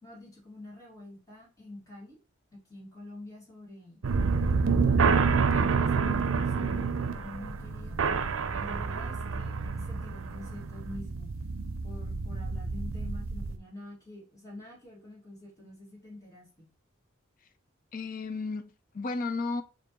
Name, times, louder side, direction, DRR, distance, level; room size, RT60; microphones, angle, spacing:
voice 1, 0.0-2.2 2.7-4.1 4.5-5.4 5.8-8.2 8.6-11.3 11.8-16.7, left 1 dB, 15° left, 2.0 m, -46 dB
sound 1, 4.0-13.6, right 5 dB, 85° right, 0.5 m, -28 dB
voice 2, 17.9-19.6, left 3 dB, 45° left, 0.4 m, -33 dB
6.7 x 2.6 x 2.9 m
head